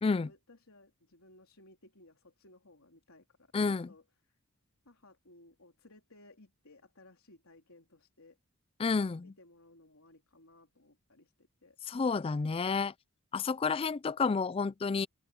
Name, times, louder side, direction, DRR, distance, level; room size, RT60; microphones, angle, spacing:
voice 1, 0.1-4.4 4.9-8.4 9.2-11.8, left 2 dB, 80° left, 3.7 m, -60 dB
voice 2, 3.5-3.9 8.8-9.3 11.9-12.9 13.3-15.1, left 4 dB, 25° left, 0.3 m, -30 dB
open air
head